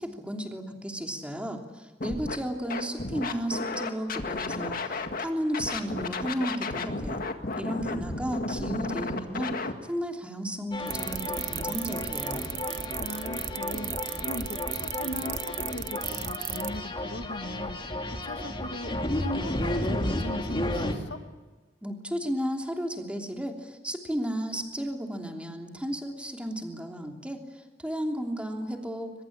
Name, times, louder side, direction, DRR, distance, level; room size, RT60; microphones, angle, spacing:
voice 1, 0.0-7.3 7.6-9.5 9.9-12.5 21.8-29.1, equal, 5° right, 2 dB, 3.1 m, -33 dB
Scratching (performance technique), 2.0-2.4 2.7-5.2 5.5-9.7, left 3 dB, 55° left, 1.9 m, -33 dB
voice 2, 7.7-8.9 13.0-13.9 14.2-17.8 18.2-21.2, left 1 dB, 90° left, 8 dB, 1.6 m, -39 dB
sound 1, 10.7-20.9, left 1 dB, 30° left, 2.6 m, -32 dB
sound 2, 10.9-16.7, right 16 dB, 85° right, 0.9 m, -33 dB
23.5 x 21.5 x 8.8 m, 1.2 s
head